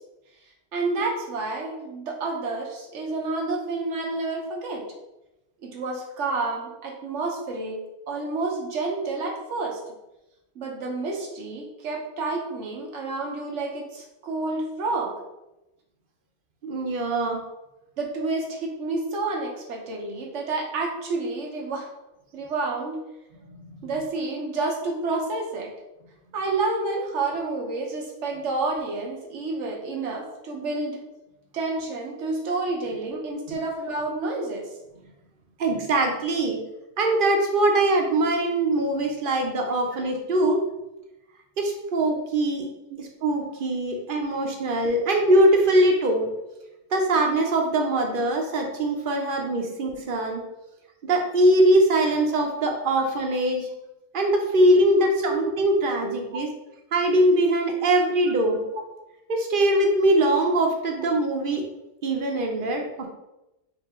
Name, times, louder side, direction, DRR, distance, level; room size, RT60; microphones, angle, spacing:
voice 1, 0.7-4.8 5.6-9.8 10.5-15.2 18.0-21.9 22.3-23.0 23.8-25.7 26.3-31.0 31.5-34.7 42.9-43.0 55.0-55.3 56.0-56.1, right 3 dB, 90° right, 1 dB, 1.2 m, -29 dB
voice 2, 16.6-17.4 35.6-36.6 37.0-40.6 41.6-42.7 43.0-46.2 46.9-50.4 51.0-53.7 54.1-56.5 56.9-58.6 59.3-61.6 62.0-63.1, right 1 dB, 55° right, 2 dB, 0.8 m, -22 dB
4.9 x 2.6 x 3.6 m, 0.94 s
omnidirectional pair, 1.2 m